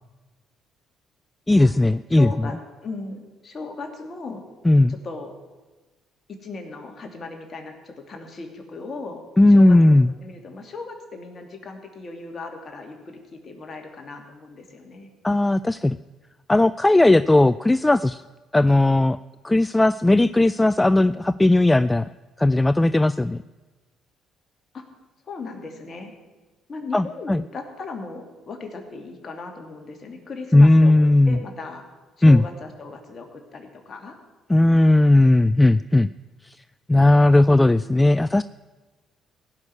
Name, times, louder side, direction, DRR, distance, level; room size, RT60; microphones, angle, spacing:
voice 1, 1.5-2.5 4.6-5.0 9.4-10.1 15.2-16.0 16.5-18.2 18.5-19.2 19.4-22.1 22.4-23.4 26.9-27.4 30.5-31.4 32.2-32.4 34.5-36.1 36.9-38.4, left 2 dB, 15° left, 15 dB, 0.3 m, -16 dB
voice 2, 2.1-4.4 4.9-5.3 6.3-9.2 9.5-15.1 24.7-24.8 25.3-26.1 26.7-30.9 31.2-31.8 32.2-34.2, left 3 dB, 45° left, 4 dB, 2.7 m, -37 dB
16.5 x 6.2 x 9.9 m, 1.2 s
hypercardioid pair, 55°, 0 cm